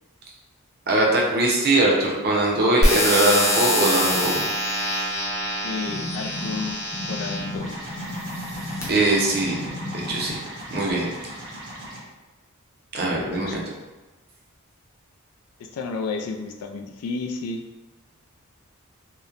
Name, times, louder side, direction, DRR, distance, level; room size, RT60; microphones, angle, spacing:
voice 1, 0.9-4.4 8.9-9.6 9.9-10.4 10.7-11.1 12.9-13.6, right 2 dB, 45° right, -2 dB, 0.6 m, -21 dB
sound 1, 2.8-7.6 8.3-8.8, equal, 15° left, 0.6 m, -25 dB
voice 2, 5.6-7.8 13.0-13.6 15.6-17.6, left 4 dB, 80° left, 4 dB, 0.3 m, -32 dB
sound 2, 5.8-9.0 9.3-10.3 10.9-11.0, left 1 dB, 55° left, 0.9 m, -34 dB
sound 3, 7.6-12.0, right 1 dB, 65° right, 0.9 m, -37 dB
2.9 x 2.0 x 2.4 m, 1.2 s
head